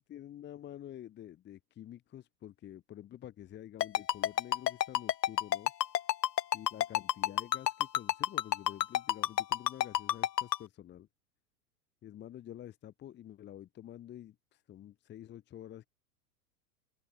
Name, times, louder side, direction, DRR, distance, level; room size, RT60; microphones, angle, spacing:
voice 1, 0.0-5.7 6.5-11.1 12.0-15.9, left 11 dB, 20° left, 1.4 m, -48 dB
Ringtone, 3.8-10.6, left 11 dB, 80° left, 0.6 m, -28 dB
open air
figure-of-eight pair, 95°, 48 cm